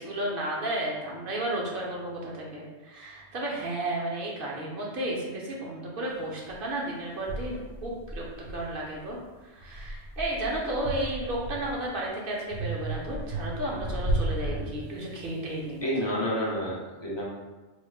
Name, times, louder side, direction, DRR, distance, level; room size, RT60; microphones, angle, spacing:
voice 1, 0.0-16.2, right 1 dB, 55° right, -3 dB, 0.8 m, -33 dB
sound 1, 6.5-6.6 7.3-9.1 9.6-11.9 12.5-15.3, right 2 dB, 25° right, 0.7 m, -34 dB
voice 2, 14.5-14.8 15.8-17.2, equal, 30° left, -5 dB, 0.6 m, -30 dB
3.4 x 3.1 x 2.3 m, 1.2 s
omnidirectional pair, 1.2 m